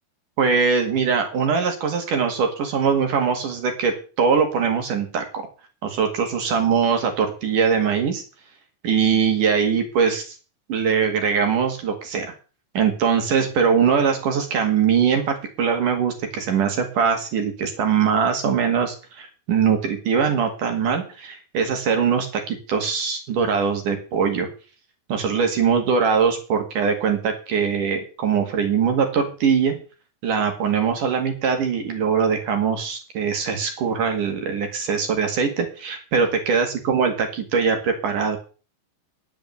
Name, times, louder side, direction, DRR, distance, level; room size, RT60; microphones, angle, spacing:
voice 1, 0.4-5.5 5.8-8.2 8.8-10.4 10.7-12.3 12.7-24.5 25.1-29.8 30.2-38.4, right 6 dB, 55° right, 5 dB, 3.1 m, -22 dB
10.5 x 7.2 x 7.9 m, 0.36 s
omnidirectional pair, 4.9 m